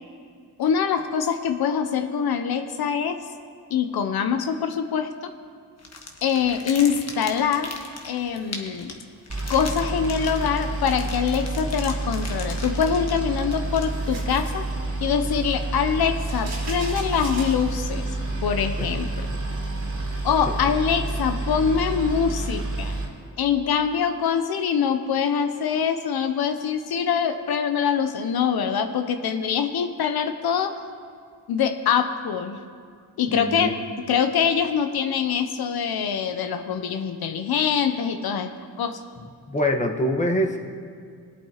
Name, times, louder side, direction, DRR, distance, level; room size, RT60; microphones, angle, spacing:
voice 1, 0.6-3.2 3.7-5.1 6.2-7.7 8.0-8.9 9.5-14.6 15.0-18.0 18.4-19.3 20.2-22.9 23.4-30.7 31.5-32.6 33.2-33.8 34.1-38.5 38.8-39.0, left 7 dB, 80° left, 7 dB, 0.6 m, -24 dB
sound 1, 5.8-14.3, left 3 dB, 45° left, 1.4 m, -39 dB
Boat Water vehicle, 9.3-23.1, right 2 dB, 55° right, 2.6 m, -29 dB
sound 2, 13.6-15.3 15.6-18.1, right 2 dB, 75° right, 2.9 m, -38 dB
voice 2, 20.1-20.5 33.3-33.7 39.5-40.6, left 1 dB, 20° left, 2 dB, 1.2 m, -25 dB
19.5 x 8.3 x 2.9 m, 2.2 s
cardioid pair, 60°, 37 cm